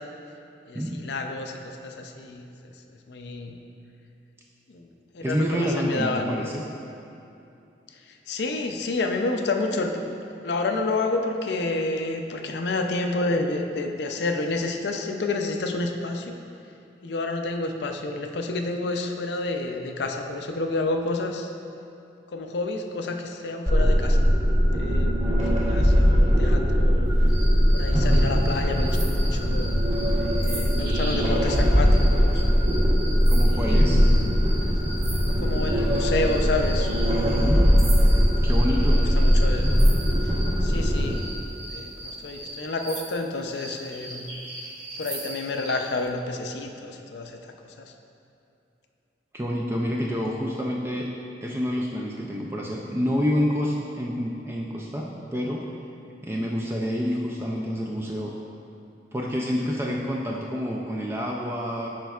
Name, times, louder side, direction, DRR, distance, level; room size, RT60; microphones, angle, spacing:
voice 1, 0.7-2.5 3.1-3.6 4.7-4.9 5.1-6.3 8.1-10.2 10.4-16.4 17.0-21.5 22.3-24.2 24.7-25.3 25.5-27.1 27.7-29.7 30.2-32.4 33.5-34.4 35.4-36.9 38.7-39.7 40.2-41.2 41.7-44.3 45.0-47.9, left 2 dB, 70° left, 4 dB, 0.4 m, -29 dB
voice 2, 5.2-6.7 33.3-34.0 37.4-37.8 38.4-39.1 49.3-51.1 51.4-55.7 56.2-58.3 59.1-61.9, equal, 15° right, -2 dB, 0.3 m, -28 dB
sound 1, 23.7-41.1, equal, 35° right, 1.5 m, -20 dB
sound 2, 27.3-40.5 41.1-45.8, right 2 dB, 55° right, 1.3 m, -39 dB
10.0 x 4.5 x 2.4 m, 2.7 s
head